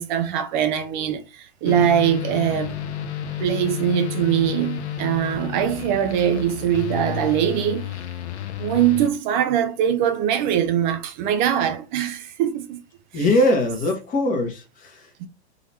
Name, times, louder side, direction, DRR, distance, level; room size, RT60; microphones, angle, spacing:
voice 1, 0.0-2.7 3.4-7.9 8.6-12.8 13.1-13.5 15.2-15.3, right 9 dB, 45° right, 0.7 m, -22 dB
sound 1, 1.6-9.1, left 9 dB, 75° left, 0.9 m, -31 dB
voice 2, 13.1-15.3, left 1 dB, 25° left, 1.3 m, -22 dB
3.9 x 3.0 x 4.2 m
hypercardioid pair, 125°, 34 cm